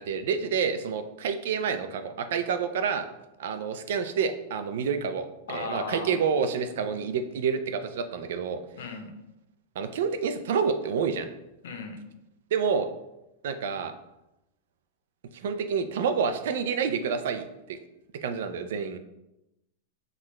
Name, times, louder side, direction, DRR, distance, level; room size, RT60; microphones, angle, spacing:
voice 1, 0.0-3.1 3.4-8.6 9.8-11.3 12.5-12.9 13.4-13.9 15.3-17.8 18.2-19.0, right 6 dB, 70° right, 9 dB, 0.4 m, -28 dB
voice 2, 5.5-6.1 8.8-9.1 11.6-12.0, left 4 dB, 85° left, 5 dB, 0.8 m, -36 dB
5.8 x 2.4 x 3.1 m, 0.91 s
supercardioid pair, 155°, 0 cm